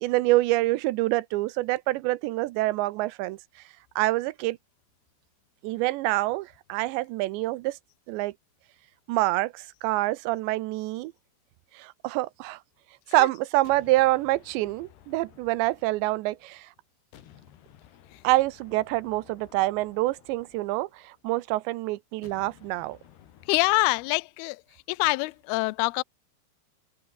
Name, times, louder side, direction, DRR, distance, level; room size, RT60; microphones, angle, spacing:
voice 1, 0.0-3.4 4.0-4.6 5.6-7.8 8.1-8.3 9.1-11.1 11.7-12.6 13.1-16.7 18.2-23.0, right 19 dB, 85° right, 2.9 m, -26 dB
sound 1, 13.6-16.7 17.1-21.4 22.2-24.3, left 10 dB, 70° left, 4.1 m, -55 dB
voice 2, 23.5-24.6 24.9-26.0, left 26 dB, 90° left, 2.2 m, -25 dB
omnidirectional pair, 5.2 m